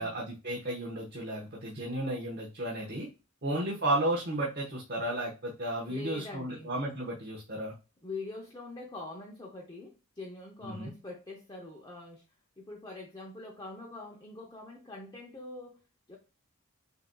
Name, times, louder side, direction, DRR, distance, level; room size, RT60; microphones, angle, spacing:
voice 1, 0.0-3.1 3.4-7.7 10.6-10.9, right 1 dB, 45° right, 1.1 m, -33 dB
voice 2, 3.5-3.8 5.9-6.7 8.0-12.2 12.6-15.8 16.1-16.2, left 2 dB, 20° left, 0.6 m, -44 dB
6.7 x 2.7 x 2.3 m
head